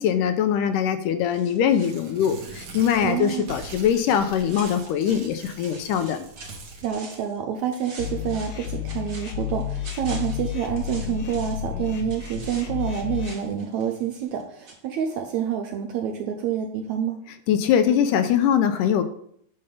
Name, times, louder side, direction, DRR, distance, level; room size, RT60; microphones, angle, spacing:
voice 1, 0.0-6.3 17.5-19.0, left 9 dB, 80° left, 9 dB, 2.1 m, -22 dB
sound 1, 1.3-5.4 5.6-7.4 7.7-11.7 12.1-14.4 14.7-14.8, right 2 dB, 35° right, 1.8 m, -45 dB
Tearing, 1.7-6.9, right 4 dB, 60° right, 2.6 m, -42 dB
voice 2, 3.0-3.6 6.8-17.2, right 8 dB, 75° right, 4 dB, 1.8 m, -28 dB
sound 2, 8.0-13.3, left 10 dB, 60° left, 2.0 m, -31 dB
9.6 x 5.5 x 5.2 m, 0.67 s
omnidirectional pair, 4.0 m